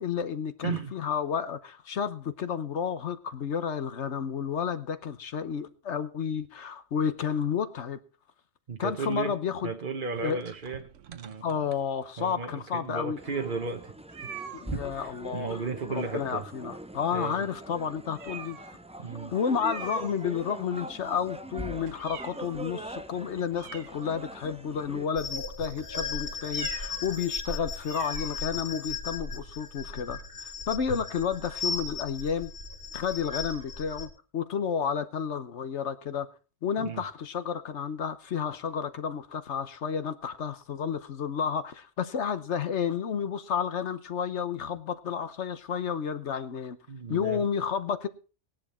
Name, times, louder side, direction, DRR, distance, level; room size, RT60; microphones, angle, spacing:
voice 1, 0.0-8.0 8.8-9.7 10.2-10.4 11.4-13.2 14.5-15.6 15.9-18.6 19.3-32.5 32.9-36.3 36.6-46.8 47.1-48.1, left 7 dB, 65° left, 1.2 m, -31 dB
voice 2, 8.7-9.4 9.6-11.5 12.2-13.9 14.7-16.4 17.1-17.4 19.0-19.3 36.8-37.0 46.9-47.5, right 5 dB, 45° right, 1.1 m, -35 dB
sound 1, 10.1-12.3 12.9-13.0 13.2-13.3 14.1-14.7 16.0-16.5 16.9-17.0 17.5-17.6 18.1-18.8 19.5-20.6 21.0-22.7 23.1-23.2 23.5-24.5 25.1-25.4 26.4-27.1 27.4-27.5 27.8-28.4, right 8 dB, 80° right, 1.2 m, -45 dB
sound 2, 13.2-25.1, right 1 dB, 10° right, 0.4 m, -42 dB
sound 3, 25.2-34.1, left 4 dB, 50° left, 2.0 m, -36 dB
17.5 x 10.5 x 4.3 m
omnidirectional pair, 1.3 m